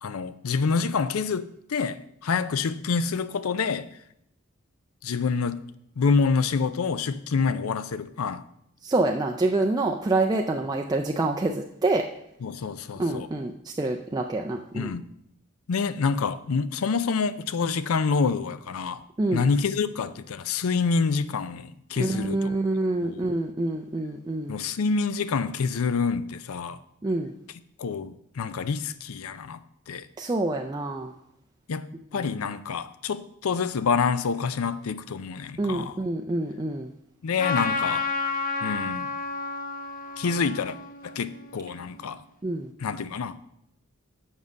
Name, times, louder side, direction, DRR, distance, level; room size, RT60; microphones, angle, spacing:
voice 1, 0.0-3.9 5.0-5.6 6.0-8.4 12.4-13.3 14.7-15.0 15.7-19.0 19.3-22.5 23.0-23.3 24.5-26.8 27.8-29.6 29.9-30.1 31.7-36.0 37.2-38.1 38.6-39.1 40.2-40.7 41.0-42.2 42.8-43.5, left 5 dB, 75° left, 0.5 m, -27 dB
voice 2, 8.8-12.1 13.0-14.9 19.2-19.5 22.0-24.6 27.0-27.3 30.2-31.1 32.1-32.3 35.6-36.9 42.4-42.7, right 2 dB, 20° right, 0.4 m, -27 dB
Trumpet, 37.4-42.0, left 4 dB, 40° left, 0.7 m, -31 dB
7.2 x 5.5 x 6.2 m
head